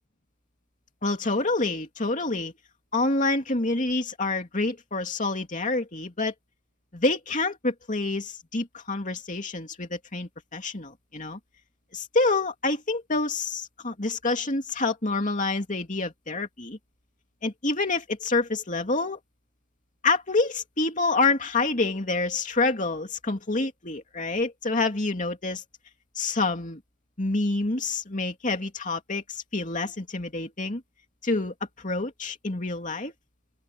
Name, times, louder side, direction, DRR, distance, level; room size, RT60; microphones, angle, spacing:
voice 1, 1.0-2.5 2.9-6.3 6.9-11.4 11.9-16.8 17.4-19.2 20.0-25.6 26.1-26.8 27.2-30.8 31.2-33.1, left 3 dB, 35° left, 2.8 m, -27 dB
open air
head